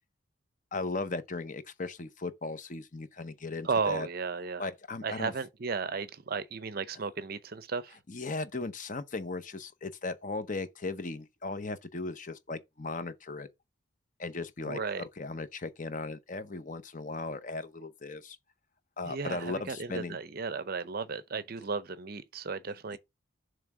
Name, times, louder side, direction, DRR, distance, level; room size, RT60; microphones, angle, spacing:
voice 1, 0.7-4.1 4.6-5.3 8.1-13.5 14.2-18.4 19.0-20.2 22.9-23.0, left 3 dB, 40° left, 0.7 m, -37 dB
voice 2, 3.6-4.7 5.0-8.0 14.6-15.0 19.0-23.0, right 4 dB, 45° right, 0.6 m, -34 dB
7.1 x 3.3 x 6.1 m
head